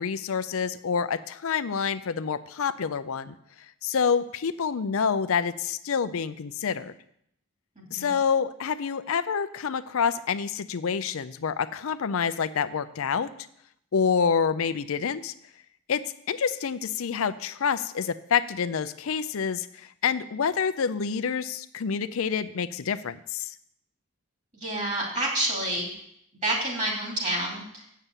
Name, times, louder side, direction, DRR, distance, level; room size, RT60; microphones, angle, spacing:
voice 1, 0.0-3.3 3.8-6.9 7.9-13.3 13.9-15.3 15.9-16.0 16.3-23.5, left 6 dB, 70° left, 12 dB, 0.5 m, -27 dB
voice 2, 7.8-8.1 24.5-25.9 26.4-27.9, right 1 dB, 35° right, -1 dB, 2.8 m, -29 dB
8.3 x 6.7 x 7.4 m, 0.72 s
head